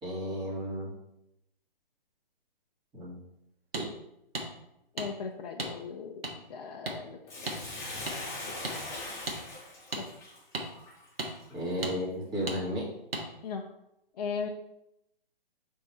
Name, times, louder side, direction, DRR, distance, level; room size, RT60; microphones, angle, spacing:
voice 1, 0.0-0.9 2.9-3.2 3.7-3.8 11.5-12.9, equal, 15° right, -6 dB, 2.3 m, -33 dB
sound 1, 3.7-3.9 4.3-4.5 5.0-5.1 5.6-5.7 6.2-6.3 6.8-7.0 7.5-7.6 8.1-8.2 8.6-8.8 9.3-9.4 9.9-10.0 10.5-10.7 11.2-11.3 11.8-11.9 12.5-12.6 13.1-13.2, right 2 dB, 80° right, 1.4 m, -34 dB
voice 2, 4.9-7.6 9.9-10.0 13.4-13.6 14.1-14.5, left 5 dB, 45° left, 1 dB, 0.6 m, -38 dB
Bathtub (filling or washing), 7.3-11.8 12.3-12.4, left 2 dB, 10° left, 1.6 m, -41 dB
6.7 x 3.7 x 4.5 m, 0.84 s
figure-of-eight pair, 135°, 29 cm